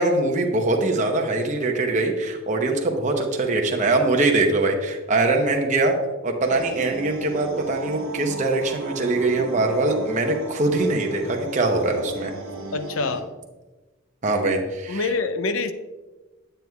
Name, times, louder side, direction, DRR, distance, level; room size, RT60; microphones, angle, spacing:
voice 1, 0.0-6.0 6.2-12.3 14.2-15.1, right 2 dB, 35° right, 0.8 m, -22 dB
sound 1, 6.4-13.2, right 2 dB, 75° right, 1.2 m, -36 dB
voice 2, 12.7-13.3 14.9-15.7, left 3 dB, 75° left, 0.5 m, -25 dB
9.0 x 7.8 x 2.3 m
head